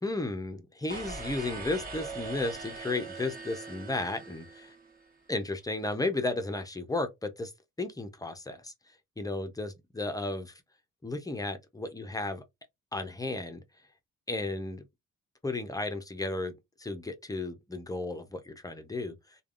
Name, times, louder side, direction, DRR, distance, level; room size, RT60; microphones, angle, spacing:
voice 1, 0.0-4.4 5.3-7.5 7.8-8.7 9.2-10.5 11.0-12.4 12.9-13.6 14.3-14.8 15.4-16.5 16.8-19.4, left 2 dB, 10° left, 0.6 m, -34 dB
sound 1, 0.9-5.1, right 4 dB, 30° right, 1.3 m, -41 dB
3.3 x 2.3 x 2.4 m
cardioid pair, 90°, 30 cm